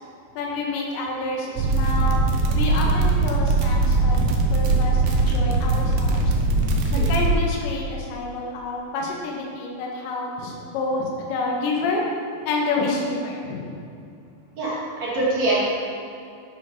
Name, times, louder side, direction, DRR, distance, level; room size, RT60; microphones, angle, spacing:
voice 1, 0.4-4.2 4.5-6.3 6.9-12.0 12.4-13.9, left 3 dB, 70° left, -2 dB, 3.6 m, -28 dB
sound 1, 1.6-7.3, right 3 dB, 85° right, 3.6 m, -20 dB
voice 2, 14.6-15.6, right 2 dB, 45° right, -7 dB, 2.8 m, -24 dB
12.0 x 6.9 x 5.7 m, 2.5 s
omnidirectional pair, 5.5 m